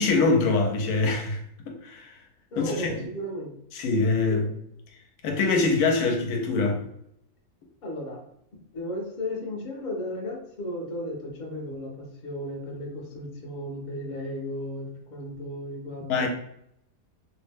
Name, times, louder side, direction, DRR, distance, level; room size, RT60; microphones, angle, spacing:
voice 1, 0.0-1.4 1.7-2.1 2.6-3.0 3.7-4.5 5.2-6.8 16.1-16.3, left 3 dB, 85° left, 1.1 m, -24 dB
voice 2, 2.5-3.5 4.3-4.4 7.8-8.2 8.7-16.3, left 1 dB, 45° left, 0.7 m, -34 dB
2.8 x 2.0 x 3.3 m
omnidirectional pair, 1.6 m